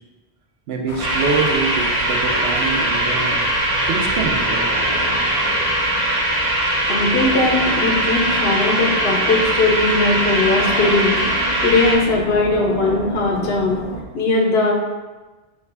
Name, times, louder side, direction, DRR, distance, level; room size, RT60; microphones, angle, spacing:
voice 1, 0.7-3.5 3.9-4.7, right 4 dB, 75° right, 1 dB, 0.9 m, -25 dB
sound 1, 0.9-14.0, left 1 dB, 45° left, 0.5 m, -31 dB
sound 2, 1.0-11.9, right 1 dB, 45° right, 1.0 m, -21 dB
voice 2, 6.9-11.2 11.6-13.8 14.1-14.7, left 3 dB, 75° left, -1 dB, 1.0 m, -19 dB
5.6 x 2.2 x 3.3 m, 1.2 s
omnidirectional pair, 1.0 m